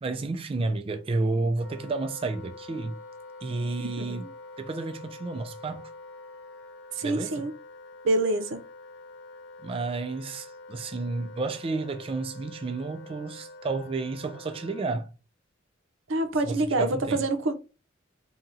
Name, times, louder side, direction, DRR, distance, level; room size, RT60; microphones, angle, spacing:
voice 1, 0.0-3.0 3.4-4.3 4.6-5.9 7.0-7.5 9.6-15.1 16.4-17.2, right 3 dB, 30° right, 0.3 m, -31 dB
Wind instrument woodwind instrument, 1.6-14.9, left 2 dB, 75° left, 0.5 m, -46 dB
voice 2, 3.8-4.2 6.9-7.5 8.0-8.6 16.1-17.5, right 2 dB, 85° right, 0.5 m, -26 dB
2.8 x 2.8 x 3.7 m
head